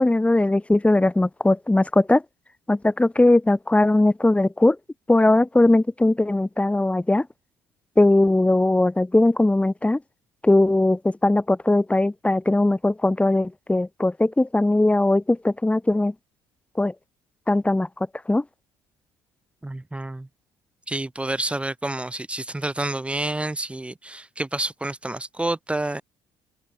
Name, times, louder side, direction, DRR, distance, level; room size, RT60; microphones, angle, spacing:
voice 1, 0.0-2.2 2.7-4.8 5.1-7.3 8.0-10.0 10.4-16.1 16.8-16.9 17.5-17.9 18.3-18.4, left 2 dB, 10° left, 5.0 m, -19 dB
voice 2, 19.6-20.3 20.9-26.0, right 2 dB, 10° right, 4.0 m, -29 dB
supercardioid pair, 80°, 11 cm